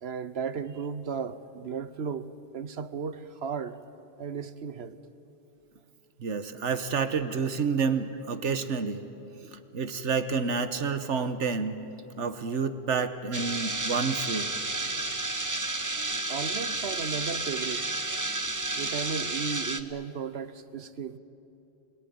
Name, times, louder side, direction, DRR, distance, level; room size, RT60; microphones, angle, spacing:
voice 1, 0.0-3.8 4.2-5.0 16.3-17.9 18.8-21.2, right 6 dB, 65° right, 1.1 m, -35 dB
voice 2, 6.2-9.1 9.7-11.8 12.2-14.5, right 5 dB, 80° right, 1.4 m, -29 dB
sound 1, 13.3-19.8, right 2 dB, 20° right, 0.8 m, -31 dB
29.5 x 19.5 x 9.5 m
omnidirectional pair, 1.2 m